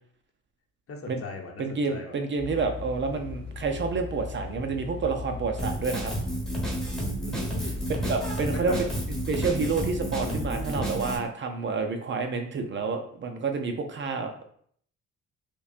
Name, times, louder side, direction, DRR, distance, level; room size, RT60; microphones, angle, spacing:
voice 1, 0.9-2.1 7.3-7.8 8.5-9.2, left 4 dB, 50° left, 1 dB, 0.8 m, -39 dB
voice 2, 1.6-6.2 8.1-8.7 9.3-14.5, right 4 dB, 40° right, 5 dB, 0.5 m, -29 dB
Interieur train, 2.4-10.7, left 4 dB, 20° left, 1.2 m, -38 dB
Drum kit, 5.6-11.2, right 1 dB, ahead, 1.1 m, -31 dB
5.2 x 2.2 x 2.4 m, 0.62 s
cardioid pair, 90°, 30 cm